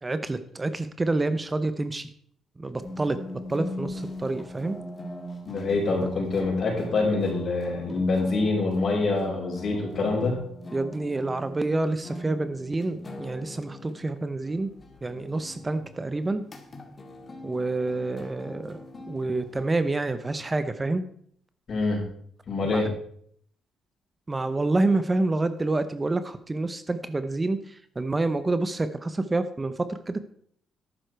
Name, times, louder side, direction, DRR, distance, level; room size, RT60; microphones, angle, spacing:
voice 1, 0.0-2.1 2.6-3.2 3.5-4.8 6.0-6.1 10.7-14.7 15.0-16.4 17.4-18.8 19.1-21.1 22.6-22.9 24.3-30.2, right 2 dB, 20° right, 11 dB, 0.8 m, -28 dB
sound 1, 2.8-19.6, left 1 dB, 35° left, 2.1 m, -41 dB
voice 2, 5.5-10.4 21.7-22.0 22.5-22.9, left 3 dB, 55° left, -1 dB, 5.5 m, -25 dB
11.5 x 9.3 x 4.6 m, 0.63 s
cardioid pair, 90°, 0 cm